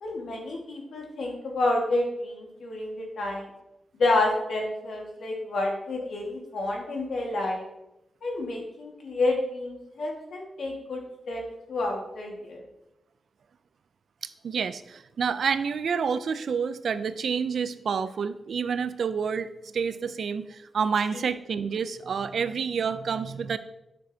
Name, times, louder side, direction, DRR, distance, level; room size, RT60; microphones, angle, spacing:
voice 1, 0.0-3.5 3.9-7.7 8.2-11.4 11.7-12.6 21.1-21.3, left 2 dB, 75° left, 0 dB, 1.6 m, -29 dB
voice 2, 14.4-23.6, right 6 dB, 70° right, 13 dB, 0.4 m, -28 dB
9.1 x 6.2 x 2.7 m, 0.91 s
wide cardioid pair, 125°, 0 cm